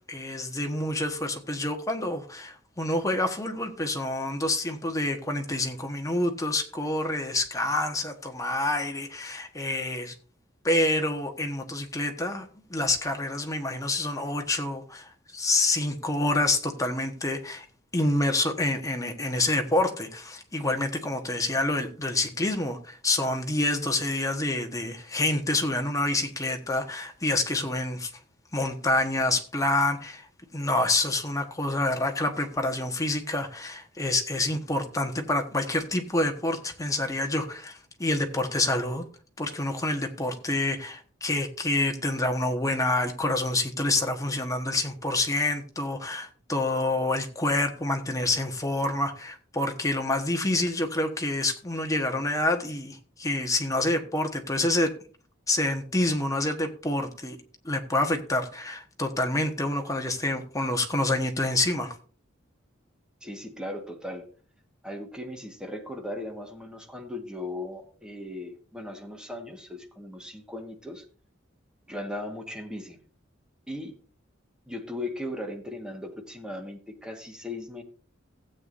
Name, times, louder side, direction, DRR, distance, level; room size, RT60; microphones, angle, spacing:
voice 1, 0.1-10.1 10.6-17.7 17.9-28.1 28.5-30.3 30.5-39.0 39.4-54.9 55.5-57.4 57.6-61.9, left 2 dB, 15° left, 1.3 m, -27 dB
voice 2, 63.2-64.3 64.8-71.0 71.9-73.0 73.7-74.0 74.7-77.8, left 1 dB, 5° right, 1.5 m, -37 dB
16.0 x 8.2 x 2.6 m
head